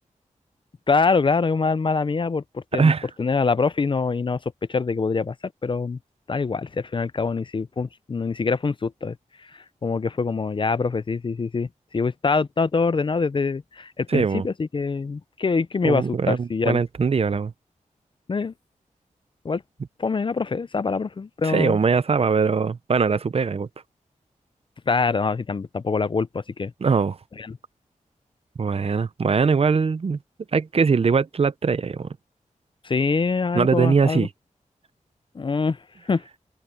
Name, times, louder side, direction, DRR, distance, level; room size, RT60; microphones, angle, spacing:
voice 1, 0.9-2.9 3.2-4.4 4.7-6.0 6.3-16.8 18.3-18.5 19.4-19.6 20.0-21.8 24.9-26.7 27.4-27.6 32.8-34.3 35.3-36.3, left 4 dB, 35° left, 0.5 m, -24 dB
voice 2, 2.7-3.1 14.1-14.4 15.8-17.5 21.5-23.7 26.8-27.2 28.6-30.2 30.5-32.1 33.5-34.3, right 5 dB, 45° right, 0.6 m, -21 dB
wide cardioid pair, 130°, 14 cm